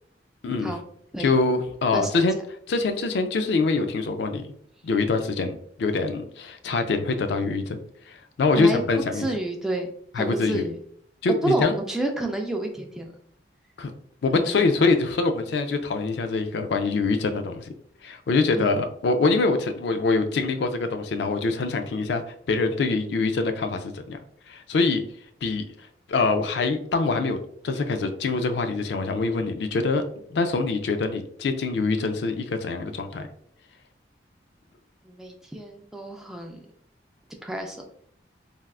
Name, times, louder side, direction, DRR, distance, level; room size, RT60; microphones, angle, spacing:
voice 1, 1.2-2.4 2.7-4.6 4.8-7.8 8.1-9.3 10.1-10.6 11.2-11.7 13.8-13.9 14.2-17.7 18.0-24.2 24.5-25.0 25.4-25.6 26.1-27.4 27.6-30.0 30.3-33.3, left 3 dB, 75° left, 7 dB, 0.4 m, -24 dB
voice 2, 1.9-2.3 8.6-8.8 9.1-9.9 10.2-10.8 11.3-13.1 14.3-14.7 18.5-18.8 35.0-36.6 37.4-37.8, right 1 dB, 5° right, 2 dB, 0.3 m, -29 dB
3.4 x 2.3 x 2.3 m, 0.65 s
head